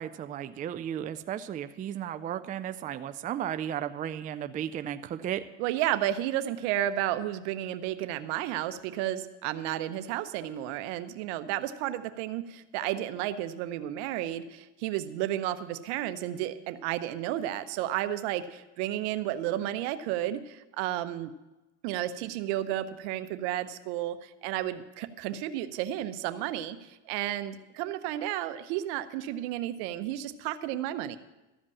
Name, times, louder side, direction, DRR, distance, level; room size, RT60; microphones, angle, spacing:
voice 1, 0.0-5.4, right 10 dB, 25° right, 10 dB, 0.4 m, -34 dB
voice 2, 5.6-21.3 21.8-31.2, right 13 dB, 70° right, 11 dB, 0.8 m, -32 dB
13.5 x 5.2 x 8.4 m, 1.0 s
supercardioid pair, 110°, 36 cm